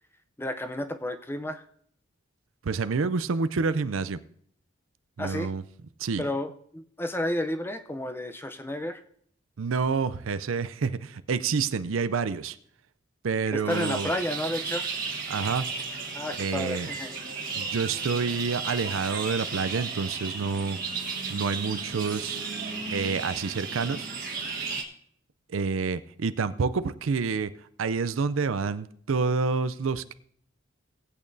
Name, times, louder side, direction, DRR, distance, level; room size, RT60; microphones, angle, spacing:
voice 1, 0.4-1.6 5.2-5.5 6.2-9.0 13.5-14.8 16.1-17.1, left 1 dB, 10° left, 8 dB, 0.6 m, -31 dB
voice 2, 2.6-4.2 5.2-5.6 6.0-6.3 9.6-12.6 13.2-14.1 15.3-15.7 16.4-16.9 17.5-20.8 21.3-22.4 22.9-24.1 25.5-27.5 27.8-30.1, right 5 dB, 80° right, 13 dB, 0.5 m, -28 dB
sound 1, 13.7-24.8, right 4 dB, 45° right, 1.4 m, -34 dB
19.0 x 8.6 x 2.7 m, 0.63 s
head